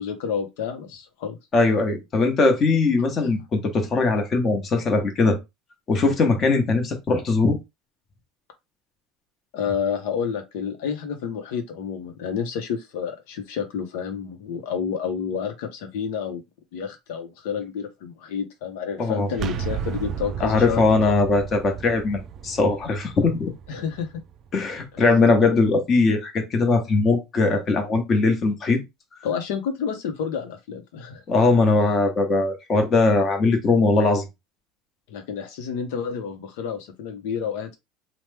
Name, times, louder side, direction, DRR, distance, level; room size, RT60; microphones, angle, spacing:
voice 1, 0.0-1.4 3.2-3.3 9.5-16.4 16.7-20.8 23.7-24.1 29.2-31.2 35.1-37.8, left 7 dB, 75° left, 0.7 m, -29 dB
voice 2, 1.5-5.4 5.9-7.6 19.0-19.3 20.4-23.5 24.5-28.8 31.3-34.2, left 3 dB, 30° left, 1.0 m, -20 dB
sound 1, 19.3-25.0, right 7 dB, 35° right, 0.3 m, -34 dB
3.0 x 2.1 x 3.3 m
supercardioid pair, 135°, 0 cm